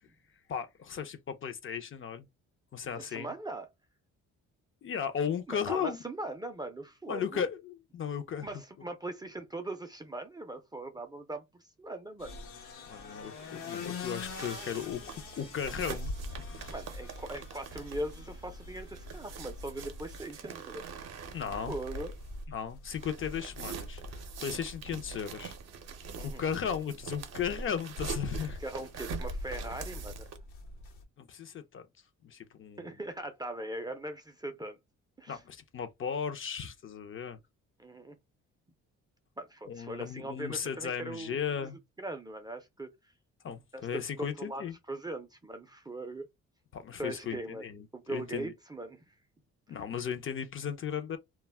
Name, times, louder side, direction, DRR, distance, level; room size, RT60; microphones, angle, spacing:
voice 1, 0.5-2.3 2.7-3.3 4.8-6.0 7.1-8.5 12.9-15.0 15.3-16.1 16.4-16.7 21.3-21.7 22.5-25.6 26.2-28.6 31.2-31.8 32.2-32.9 35.3-37.4 39.7-41.8 43.4-44.8 46.7-48.5 49.7-51.2, left 7 dB, 45° left, 0.5 m, -36 dB
voice 2, 2.9-3.7 5.5-7.5 8.4-12.4 16.7-20.8 21.7-22.1 26.1-26.4 28.6-30.3 32.8-34.8 35.2-35.4 37.8-38.1 39.4-41.7 42.0-42.9 43.7-46.3 47.0-49.1, right 2 dB, 15° right, 0.4 m, -40 dB
sound 1, 12.2-31.0, left 2 dB, 85° left, 0.9 m, -43 dB
sound 2, 14.3-22.4 22.9-30.4, right 7 dB, 60° right, 0.6 m, -45 dB
2.2 x 2.0 x 3.3 m
cardioid pair, 90°, 30 cm